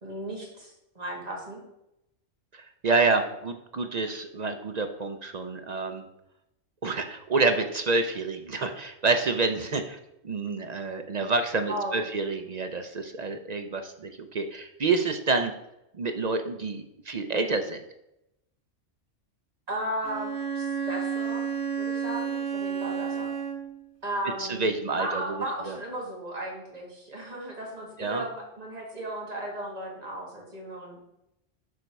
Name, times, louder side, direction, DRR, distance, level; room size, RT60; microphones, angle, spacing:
voice 1, 0.0-1.6 11.7-12.0 19.7-21.4 21.8-23.3 24.0-24.7 25.0-31.0, right 1 dB, 30° right, -2 dB, 2.0 m, -35 dB
voice 2, 2.5-6.1 6.8-10.0 10.2-15.5 16.0-17.8 24.4-25.2 25.7-25.8 28.0-28.2, right 3 dB, 50° right, 7 dB, 0.5 m, -28 dB
Bowed string instrument, 20.0-23.8, right 7 dB, 65° right, 1.4 m, -31 dB
6.9 x 5.3 x 4.6 m, 0.85 s
omnidirectional pair, 1.3 m